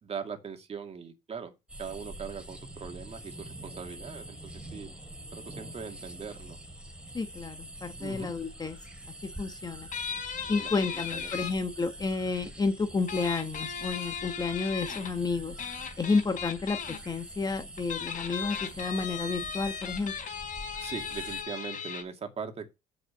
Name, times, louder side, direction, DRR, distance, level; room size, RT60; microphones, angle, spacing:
voice 1, 0.0-1.5 1.8-4.9 5.3-6.6 8.0-8.3 10.6-11.4 20.8-22.7, right 6 dB, 35° right, 2.3 m, -40 dB
sound 1, 1.7-21.4, right 1 dB, 5° right, 2.7 m, -45 dB
voice 2, 7.1-8.8 9.4-9.9 10.5-15.5 16.0-20.1, left 4 dB, 25° left, 1.2 m, -31 dB
sound 2, 9.9-11.5 13.1-15.1 15.6-17.0 17.8-22.0, left 7 dB, 50° left, 3.5 m, -37 dB
7.5 x 6.5 x 6.5 m
cardioid pair, 110°, 17 cm